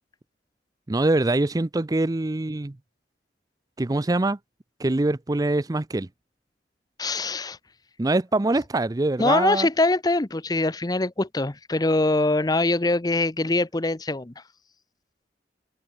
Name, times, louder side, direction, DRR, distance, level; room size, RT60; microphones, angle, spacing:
voice 1, 0.9-2.8 3.8-4.4 4.8-6.1 8.0-9.7, right 2 dB, 20° right, 0.5 m, -24 dB
voice 2, 7.0-7.6 9.2-14.3, left 2 dB, 20° left, 0.7 m, -23 dB
head